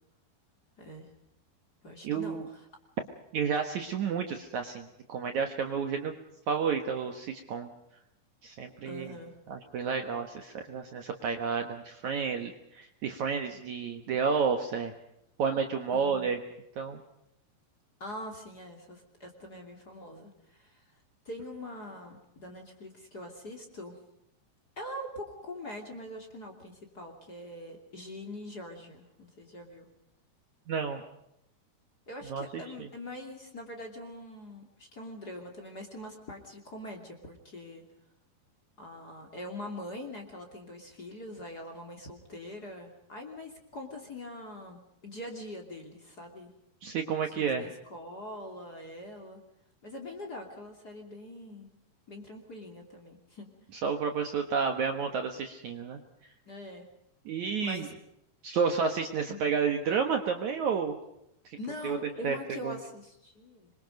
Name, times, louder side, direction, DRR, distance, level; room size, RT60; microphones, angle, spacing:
voice 1, 0.8-1.1 1.8-2.7 8.8-9.3 15.9-16.3 18.0-20.8 21.2-24.0 24.8-29.9 32.1-37.8 38.8-46.5 47.2-49.4 49.8-51.7 52.1-53.5 56.5-56.9 57.6-58.0 59.3-59.4 61.6-63.7, left 1 dB, 25° left, 2 dB, 2.9 m, -43 dB
voice 2, 2.0-2.5 3.3-6.1 6.5-7.7 8.4-9.1 9.5-14.9 15.4-16.4 16.8-17.0 30.7-31.0 32.3-32.9 46.8-47.6 53.8-56.0 57.3-57.9 58.4-61.0 61.5-61.6 61.8-62.4 62.6-62.8, right 6 dB, 60° right, 5 dB, 2.2 m, -31 dB
26.0 x 23.5 x 5.3 m, 0.80 s
omnidirectional pair, 4.6 m